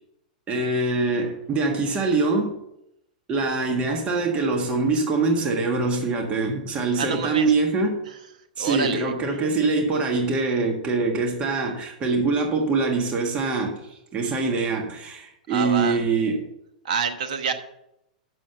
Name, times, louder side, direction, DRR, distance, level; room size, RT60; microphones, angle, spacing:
voice 1, 0.5-2.5 3.3-8.0 8.6-16.5, right 3 dB, 25° right, 1.5 m, -24 dB
voice 2, 7.0-7.5 8.6-9.1 15.5-16.0 16.8-17.5, right 6 dB, 70° right, 1.2 m, -27 dB
7.3 x 6.4 x 6.6 m
hypercardioid pair, 115°, 4 cm